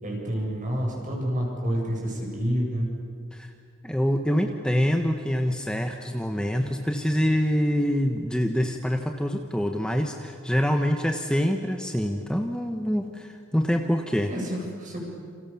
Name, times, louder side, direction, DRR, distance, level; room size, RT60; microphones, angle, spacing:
voice 1, 0.0-2.9 14.3-15.0, equal, 40° right, 0 dB, 7.6 m, -28 dB
voice 2, 3.8-14.3, equal, 5° left, 4 dB, 1.2 m, -25 dB
29.5 x 28.0 x 7.2 m, 2.3 s
head